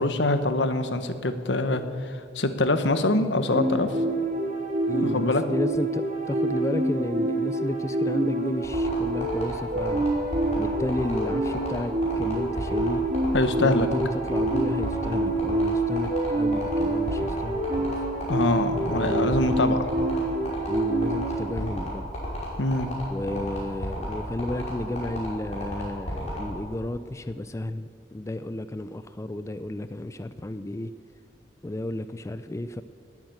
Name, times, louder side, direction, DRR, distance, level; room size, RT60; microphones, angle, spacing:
voice 1, 0.0-3.9 5.0-5.4 13.3-13.9 18.3-19.9 22.6-22.9, left 2 dB, 75° left, 9 dB, 1.2 m, -24 dB
sound 1, 3.4-21.5, right 2 dB, 45° right, 2.6 m, -27 dB
voice 2, 4.9-10.1 10.6-13.0 13.6-16.1 16.3-17.9 18.8-19.4 20.7-22.1 23.1-30.9 31.6-32.8, left 1 dB, 15° left, 12 dB, 0.4 m, -32 dB
sound 2, 8.6-26.4, left 1 dB, 40° left, 5.4 m, -33 dB
20.0 x 8.9 x 8.0 m, 2.3 s
head